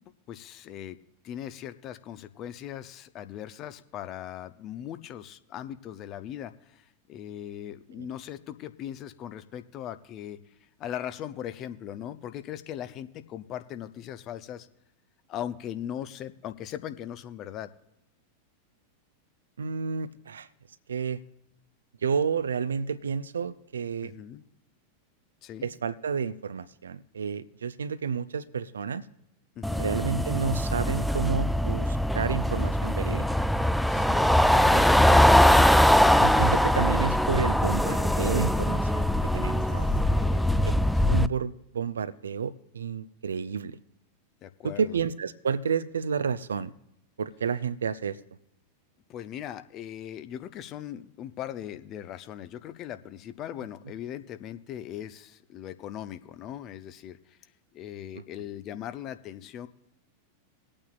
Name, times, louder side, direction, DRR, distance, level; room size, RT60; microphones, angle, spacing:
voice 1, 0.3-1.0 1.2-10.4 10.8-14.7 15.3-17.7 24.0-24.4 25.4-25.7 29.6-30.0 33.9-34.3 39.8-40.5 41.0-41.2 44.4-45.0 49.1-57.4 57.7-59.7, left 10 dB, 35° left, 12 dB, 0.7 m, -39 dB
voice 2, 19.6-20.5 20.9-21.2 22.0-24.1 25.6-29.0 29.8-33.3 34.5-34.9 35.5-35.7 36.2-39.1 39.3-39.9 41.1-43.8 44.6-46.7 47.2-48.2 58.1-58.2, right 6 dB, 70° right, 15 dB, 0.5 m, -30 dB
sound 1, 29.6-41.3, left 1 dB, ahead, 0.3 m, -22 dB
21.0 x 8.7 x 2.5 m, 0.83 s
figure-of-eight pair, 90°, 0 cm